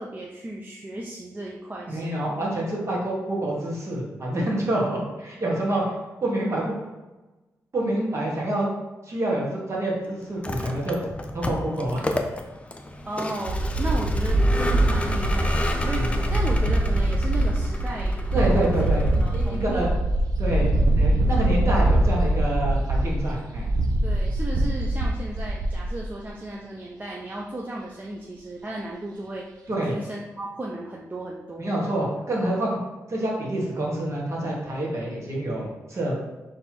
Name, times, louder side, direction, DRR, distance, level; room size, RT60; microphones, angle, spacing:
voice 1, 0.0-2.3 13.1-18.7 19.2-19.9 24.0-29.5 29.9-31.7, right 1 dB, 30° right, -2 dB, 0.6 m, -35 dB
voice 2, 1.9-6.7 7.7-8.7 9.0-11.0 11.3-12.2 16.0-16.1 18.3-19.1 19.3-19.9 20.4-23.7 29.7-29.9 31.6-32.8 33.1-36.2, right 1 dB, 50° right, -3 dB, 1.5 m, -27 dB
Vehicle, 10.3-19.7, left 1 dB, 20° left, 0.5 m, -32 dB
sound 1, 13.5-26.2, right 1 dB, 80° right, 0.5 m, -23 dB
4.2 x 3.3 x 2.9 m, 1.1 s
cardioid pair, 55°, 6 cm